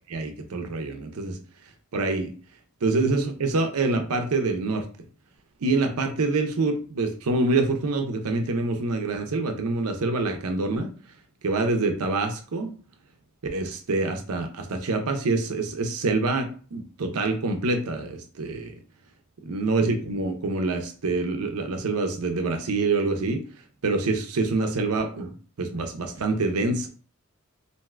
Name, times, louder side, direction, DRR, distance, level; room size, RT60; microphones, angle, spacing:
voice 1, 0.1-1.4 1.9-2.3 2.8-4.9 5.6-10.9 11.4-12.7 13.5-18.7 19.4-23.4 23.8-25.3 25.6-26.9, right 3 dB, 90° right, 5 dB, 0.6 m, -26 dB
2.6 x 2.3 x 3.2 m, 0.41 s
head